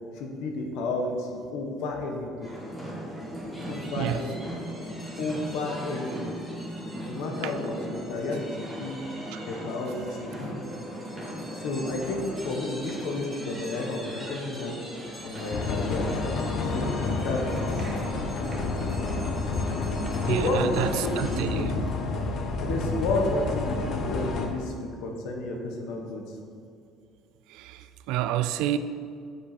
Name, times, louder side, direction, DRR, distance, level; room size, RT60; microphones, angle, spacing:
voice 1, 0.1-2.5 3.7-4.4 5.2-6.4 7.1-9.0 9.4-10.6 11.5-14.8 15.2-16.1 16.7-17.9 20.2-21.7 22.6-26.4, left 2 dB, 70° left, 2 dB, 1.3 m, -31 dB
sound 1, 2.4-21.4, equal, 5° left, 1.6 m, -38 dB
sound 2, 15.0-24.1, equal, 25° right, 1.0 m, -40 dB
sound 3, 15.5-24.5, left 3 dB, 40° left, 0.7 m, -30 dB
voice 2, 20.2-21.8 27.5-28.8, right 12 dB, 80° right, 12 dB, 0.4 m, -29 dB
7.2 x 7.2 x 4.3 m, 2.3 s
cardioid pair, 180°, 0 cm